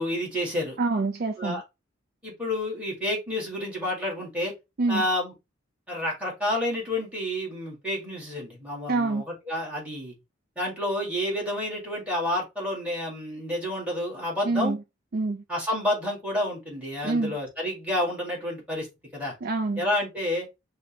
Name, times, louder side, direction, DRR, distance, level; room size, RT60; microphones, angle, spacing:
voice 1, 0.0-0.8 1.4-1.6 2.2-4.5 4.9-5.3 5.9-10.1 10.6-14.8 15.5-18.9 19.1-19.3 19.8-20.5, left 1 dB, 5° right, 1.9 m, -29 dB
voice 2, 0.8-1.6 4.8-5.0 8.9-9.2 14.4-14.8 15.1-15.4 17.0-17.4 19.4-19.9, right 3 dB, 50° right, 0.4 m, -26 dB
6.1 x 2.2 x 2.9 m
head